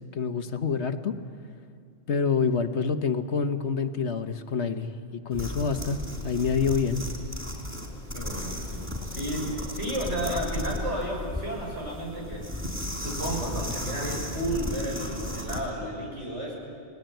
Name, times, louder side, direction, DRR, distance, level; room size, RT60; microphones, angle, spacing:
voice 1, 0.1-1.2 2.1-6.0 6.2-7.0, left 5 dB, 70° left, 8 dB, 1.4 m, -27 dB
sound 1, 5.3-15.7, left 1 dB, 10° right, 3.8 m, -35 dB
voice 2, 8.1-12.4 12.9-16.5, right 1 dB, 75° right, -1 dB, 6.2 m, -32 dB
29.5 x 19.0 x 9.2 m, 2.3 s
omnidirectional pair, 1.2 m